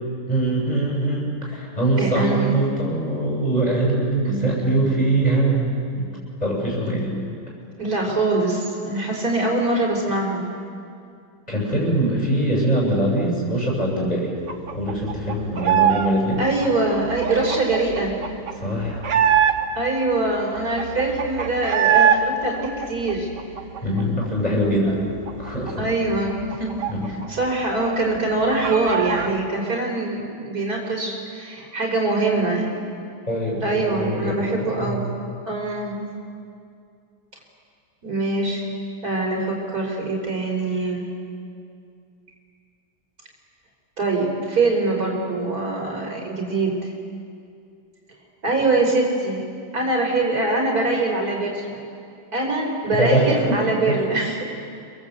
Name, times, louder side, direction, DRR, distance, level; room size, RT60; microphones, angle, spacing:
voice 1, 0.3-6.1 6.4-7.1 11.5-14.3 14.7-16.4 18.6-19.0 23.8-24.9 25.4-25.8 26.9-27.1 33.3-35.0 52.9-53.9, right 1 dB, 20° left, -3 dB, 7.3 m, -22 dB
voice 2, 2.0-2.5 4.2-4.5 7.8-10.5 16.4-18.2 19.7-23.3 25.8-26.7 27.1-32.7 33.6-35.2 35.4-36.1 38.0-38.6 39.0-41.2 44.0-46.9 48.4-49.4 49.7-51.6 52.3-54.4, right 2 dB, 60° right, 0 dB, 4.9 m, -23 dB
sound 1, 14.5-16.1 16.4-19.9 20.3-20.4 20.6-22.2 22.5-24.3 24.6-24.7 25.0-27.5 27.7-27.8 28.2-29.3, right 8 dB, 85° right, 2.2 m, -23 dB
29.5 x 22.0 x 8.2 m, 2.4 s
omnidirectional pair, 1.8 m